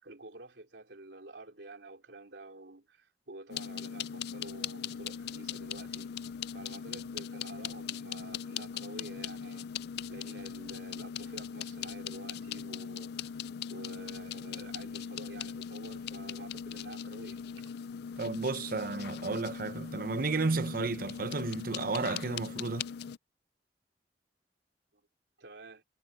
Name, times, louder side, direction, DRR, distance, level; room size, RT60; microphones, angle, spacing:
voice 1, 0.0-6.1 6.5-9.7 10.1-13.4 13.7-17.7 24.9-25.1 25.4-25.8, right 2 dB, 85° right, 3.2 m, -49 dB
sound 1, 3.5-23.2, left 7 dB, 65° left, 0.4 m, -40 dB
voice 2, 18.2-22.9, right 3 dB, 55° right, 0.8 m, -32 dB
head